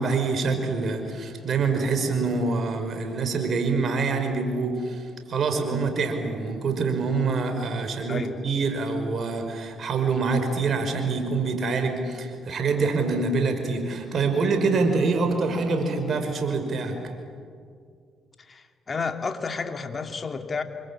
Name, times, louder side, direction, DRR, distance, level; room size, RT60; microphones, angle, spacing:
voice 1, 0.0-17.0, right 4 dB, 55° right, 6 dB, 5.3 m, -25 dB
voice 2, 18.4-20.6, left 4 dB, 40° left, 6 dB, 2.7 m, -31 dB
28.0 x 24.0 x 8.8 m, 2.2 s
hypercardioid pair, 50°, 0 cm